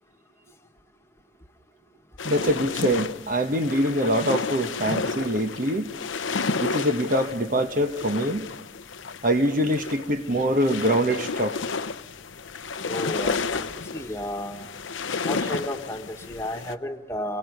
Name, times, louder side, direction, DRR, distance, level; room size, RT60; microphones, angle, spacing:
sound 1, 2.2-16.7, left 4 dB, 90° left, 0.8 m, -32 dB
voice 1, 2.2-5.9 6.6-8.5 9.2-11.6, equal, 45° right, 1.2 m, -24 dB
voice 2, 12.8-14.6 15.2-17.4, left 1 dB, 15° left, 1.6 m, -33 dB
29.5 x 24.0 x 5.3 m
head